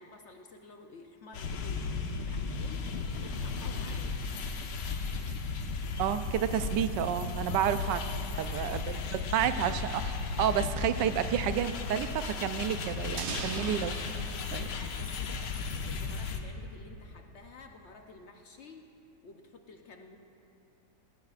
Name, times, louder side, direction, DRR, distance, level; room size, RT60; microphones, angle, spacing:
voice 1, 0.0-4.2 6.6-6.7 7.5-7.9 8.3-9.8 13.5-13.8 14.3-18.9 19.2-20.2, left 3 dB, 60° left, 3 dB, 0.7 m, -51 dB
sound 1, 1.3-16.4, left 4 dB, 85° left, 1.5 m, -35 dB
voice 2, 6.0-8.0 8.4-8.8 9.1-10.0 10.4-13.9 14.5-14.7, right 10 dB, 90° right, 11 dB, 1.2 m, -30 dB
sound 2, 13.2-16.0, right 5 dB, 70° right, 1.5 m, -42 dB
20.0 x 17.0 x 2.4 m, 2.9 s
omnidirectional pair, 1.8 m